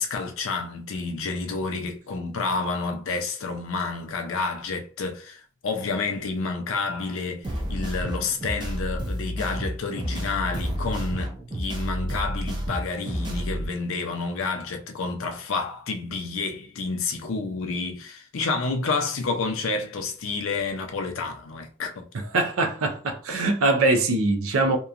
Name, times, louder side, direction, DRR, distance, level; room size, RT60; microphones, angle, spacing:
voice 1, 0.0-22.1, left 4 dB, 65° left, 0.5 m, -29 dB
sound 1, 7.4-13.7, equal, 20° right, 0.4 m, -30 dB
voice 2, 22.1-24.8, right 3 dB, 70° right, 0.5 m, -23 dB
2.8 x 2.2 x 2.4 m
head